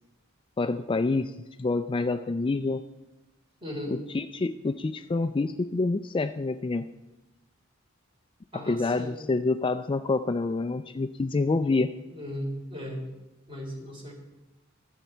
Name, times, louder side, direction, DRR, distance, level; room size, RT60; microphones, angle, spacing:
voice 1, 0.6-2.8 4.1-6.9 8.7-11.9, left 3 dB, 25° left, 10 dB, 0.4 m, -27 dB
voice 2, 3.6-4.0 8.5-9.2 12.1-13.0 13.5-14.1, equal, 25° right, 0 dB, 3.6 m, -36 dB
24.0 x 8.2 x 4.4 m, 1.0 s
head